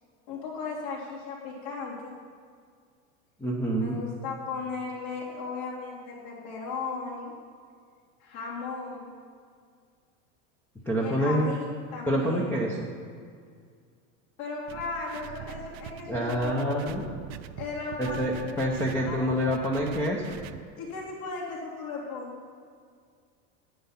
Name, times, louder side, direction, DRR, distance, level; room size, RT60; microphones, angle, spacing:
voice 1, 0.3-2.1 3.8-7.3 8.2-9.1 11.0-11.6 11.9-12.5 14.4-16.6 17.6-18.6 19.0-19.2 20.8-22.4, left 4 dB, 70° left, -4 dB, 3.4 m, -36 dB
voice 2, 3.4-4.0 10.9-11.5 12.1-12.9 16.1-17.1 18.0-20.4, equal, 5° left, -2 dB, 0.6 m, -27 dB
sound 1, 14.7-20.6, right 10 dB, 50° right, 0.5 m, -43 dB
9.5 x 9.3 x 5.7 m, 2.1 s
supercardioid pair, 160°, 40 cm